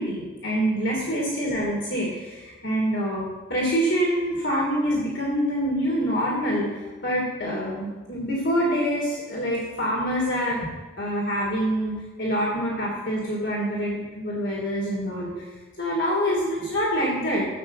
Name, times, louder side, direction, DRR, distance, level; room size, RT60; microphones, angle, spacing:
voice 1, 0.0-10.6 11.0-15.5 15.8-17.5, equal, 65° left, -3 dB, 3.0 m, -26 dB
15.0 x 7.3 x 7.6 m, 1.2 s
head